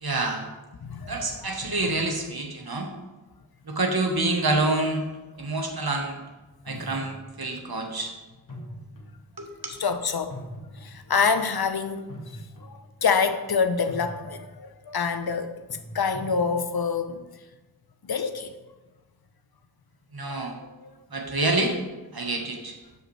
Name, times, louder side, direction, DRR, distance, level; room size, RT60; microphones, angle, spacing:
voice 1, 0.0-0.5 1.1-2.9 3.7-5.1 5.4-6.2 6.7-8.1 9.4-9.7 20.1-20.6 21.1-21.7 22.1-22.8, right 2 dB, 75° right, 3 dB, 1.2 m, -27 dB
voice 2, 0.8-1.4 9.8-10.4 10.8-12.0 12.6-15.5 15.9-17.2 18.0-18.5 20.3-20.5 20.8-20.9, left 5 dB, 75° left, 10 dB, 0.7 m, -26 dB
sound 1, 6.7-7.5 8.5-9.2 9.6-9.7 10.3-11.0 12.1-12.9 13.2-13.5 13.9-14.5 15.7-16.4, equal, 60° left, 1.6 m, -41 dB
12.5 x 5.1 x 3.2 m, 1.1 s
wide cardioid pair, 50°, 38 cm